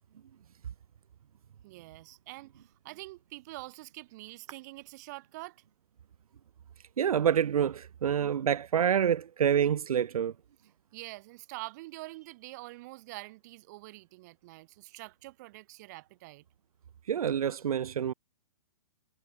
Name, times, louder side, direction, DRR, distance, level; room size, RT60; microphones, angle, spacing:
voice 1, 1.6-5.6 10.9-16.4, right 20 dB, 30° right, 4.4 m, -45 dB
voice 2, 7.0-10.3 17.1-18.1, right 8 dB, 80° right, 1.1 m, -27 dB
hypercardioid pair, 175°, 18 cm